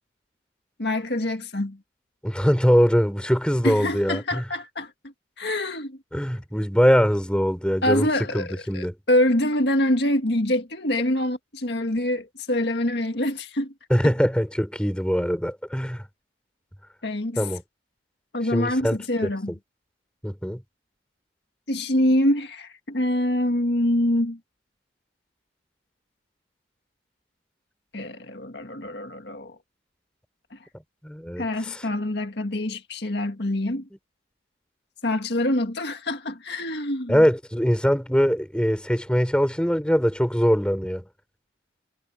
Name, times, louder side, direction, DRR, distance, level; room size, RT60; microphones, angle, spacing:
voice 1, 0.8-1.8 3.6-6.0 7.8-13.7 14.0-14.1 17.0-17.5 18.3-19.5 21.7-24.4 27.9-29.6 30.5-30.6 31.4-33.9 35.0-37.2, left 1 dB, 60° left, 1.9 m, -25 dB
voice 2, 2.2-4.4 6.1-8.1 8.3-8.9 13.9-16.0 17.4-17.6 18.5-19.0 19.5-19.6 20.2-20.6 31.0-31.9 37.1-41.0, equal, 5° left, 4.4 m, -22 dB
head